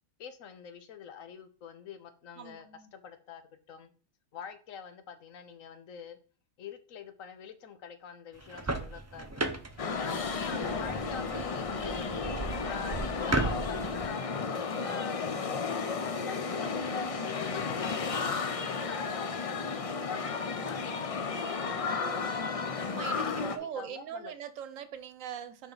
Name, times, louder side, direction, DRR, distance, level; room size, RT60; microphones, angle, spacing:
voice 1, 0.2-2.7 2.9-3.9 4.3-6.2 6.6-9.6 10.0-12.2 12.6-14.3 14.8-22.5 23.1-24.3, left 7 dB, 80° left, 1.2 m, -45 dB
voice 2, 2.4-2.9 22.9-25.7, right 9 dB, 80° right, 1.1 m, -41 dB
sound 1, 8.3-14.1, right 2 dB, 25° right, 0.4 m, -36 dB
sound 2, 9.8-23.6, left 4 dB, 50° left, 0.4 m, -33 dB
6.8 x 5.2 x 4.0 m
omnidirectional pair, 1.4 m